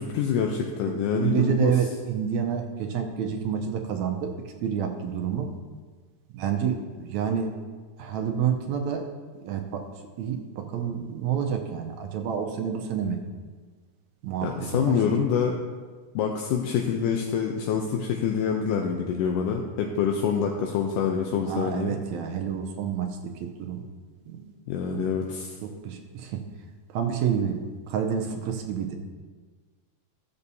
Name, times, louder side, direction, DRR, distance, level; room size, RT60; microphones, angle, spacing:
voice 1, 0.1-1.7 14.4-15.6 16.2-22.0 24.7-25.6, left 7 dB, 80° left, 2 dB, 2.2 m, -26 dB
voice 2, 0.8-4.3 4.6-5.5 6.3-7.6 8.0-9.1 9.3-9.9 10.2-13.2 14.2-15.0 21.5-23.8 24.3-24.5 24.9-25.0 25.8-26.4 26.9-27.6 27.9-29.0, right 8 dB, 75° right, 4 dB, 1.9 m, -28 dB
16.0 x 6.9 x 2.7 m, 1.5 s
omnidirectional pair, 3.8 m